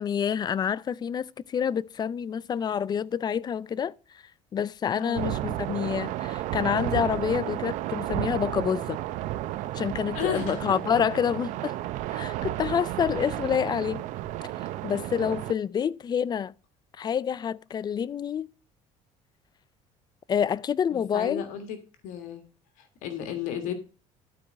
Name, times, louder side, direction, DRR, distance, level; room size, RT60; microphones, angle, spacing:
voice 1, 0.0-3.9 4.5-9.0 9.7-11.8 12.1-14.0 14.8-16.5 17.0-18.5 20.3-21.5, left 8 dB, 35° left, 0.4 m, -27 dB
voice 2, 4.9-5.4 10.1-10.8 20.9-21.8 22.0-22.4 22.8-23.7, left 8 dB, 80° left, 1.7 m, -34 dB
sound 1, 5.1-15.5, right 14 dB, 70° right, 0.7 m, -32 dB
12.5 x 4.6 x 6.3 m
cardioid pair, 105°, 13 cm